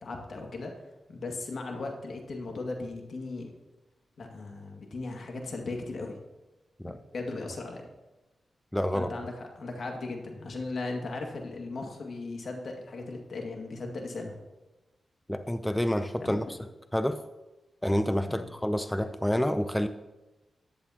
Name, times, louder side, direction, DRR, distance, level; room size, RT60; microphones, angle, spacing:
voice 1, 0.0-0.7 1.1-3.5 4.2-6.2 6.8-7.9 8.9-14.3 16.2-16.4 18.3-18.5, left 3 dB, 70° left, 1 dB, 2.1 m, -37 dB
voice 2, 8.7-9.1 15.3-16.6 16.9-17.2 17.8-19.9, equal, 5° left, 9 dB, 0.6 m, -28 dB
14.0 x 10.5 x 2.9 m, 1.1 s
cardioid pair, 65°, 0 cm